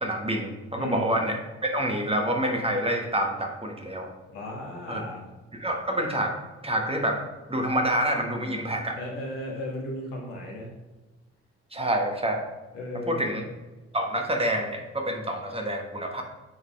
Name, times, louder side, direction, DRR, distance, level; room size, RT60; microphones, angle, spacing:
voice 1, 0.0-4.1 4.9-5.0 5.5-6.3 6.6-7.2 7.5-9.0 11.7-12.4 13.1-13.4 13.9-16.2, right 1 dB, 15° right, 2 dB, 1.3 m, -27 dB
voice 2, 0.8-1.1 4.3-5.2 9.0-10.7 12.7-13.4, left 1 dB, 75° left, -2 dB, 1.7 m, -35 dB
8.0 x 4.0 x 3.4 m, 1.2 s
hypercardioid pair, 45°, 34 cm